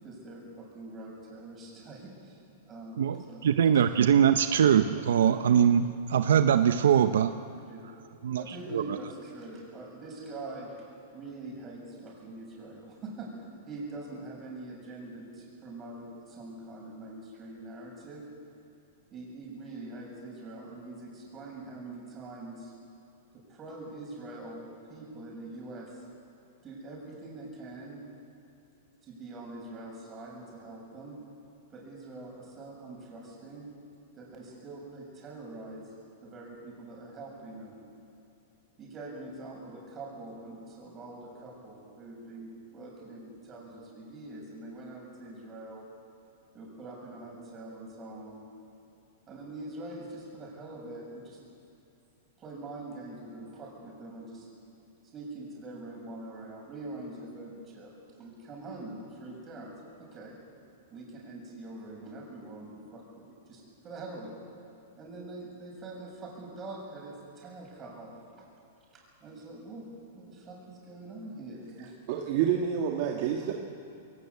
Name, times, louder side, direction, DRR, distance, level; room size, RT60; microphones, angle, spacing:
voice 1, 0.0-2.4 2.7-3.5 7.7-7.9 8.4-10.7 11.1-13.3 13.7-18.2 19.1-22.7 23.3-24.6 24.9-25.9 26.6-28.0 29.0-31.2 31.7-33.7 34.2-35.8 36.2-37.8 38.8-45.9 46.5-48.5 49.3-51.4 52.4-54.5 55.1-57.9 58.2-60.3 60.9-64.3 65.0-68.4 68.9-69.9 70.1-71.9, right 2 dB, 25° right, -1 dB, 7.2 m, -44 dB
voice 2, 3.0-7.3 8.2-8.4 8.7-8.8, right 8 dB, 85° right, 9 dB, 0.8 m, -22 dB
voice 3, 72.1-73.5, right 8 dB, 50° right, 0 dB, 1.8 m, -28 dB
22.0 x 18.5 x 8.4 m, 2.7 s
hypercardioid pair, 145°, 0 cm